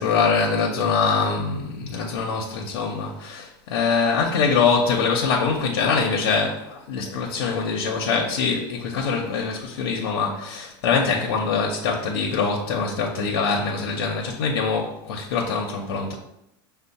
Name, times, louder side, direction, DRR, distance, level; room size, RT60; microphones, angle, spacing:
voice 1, 0.0-16.1, left 5 dB, 85° left, 0 dB, 0.6 m, -23 dB
5.3 x 2.1 x 4.0 m, 0.80 s
supercardioid pair, 150°, 12 cm